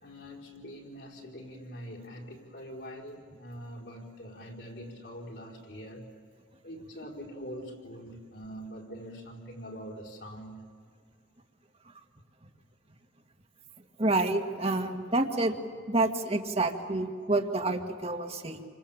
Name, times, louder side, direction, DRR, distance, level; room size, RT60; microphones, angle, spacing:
voice 1, 0.0-6.1 6.6-10.6, equal, 60° left, -1 dB, 4.9 m, -44 dB
voice 2, 14.0-15.5 15.9-18.7, right 2 dB, 30° right, 5 dB, 2.0 m, -28 dB
29.5 x 26.0 x 7.4 m, 2.1 s
head